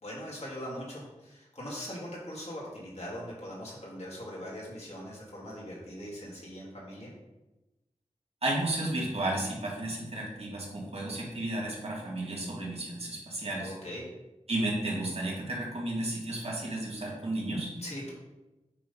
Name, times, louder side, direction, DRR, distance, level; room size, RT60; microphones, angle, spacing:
voice 1, 0.0-7.1 13.6-14.1 17.8-18.1, equal, 60° left, -5 dB, 2.9 m, -41 dB
voice 2, 8.4-13.7 14.5-17.7, right 1 dB, 55° right, -4 dB, 2.5 m, -33 dB
8.4 x 4.0 x 5.5 m, 1.0 s
wide cardioid pair, 85°, 12 cm